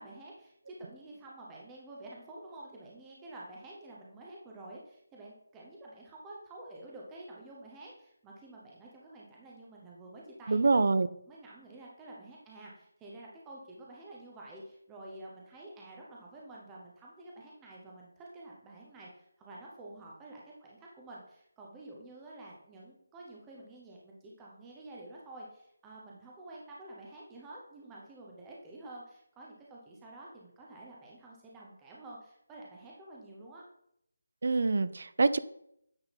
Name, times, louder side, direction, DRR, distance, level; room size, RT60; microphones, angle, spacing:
voice 1, 0.0-10.7 11.3-33.6, right 2 dB, 5° right, -3 dB, 0.7 m, -49 dB
voice 2, 10.5-11.1 34.4-35.4, right 3 dB, 45° right, 15 dB, 0.4 m, -25 dB
8.8 x 3.6 x 4.0 m, 0.70 s
figure-of-eight pair, 180°, 0 cm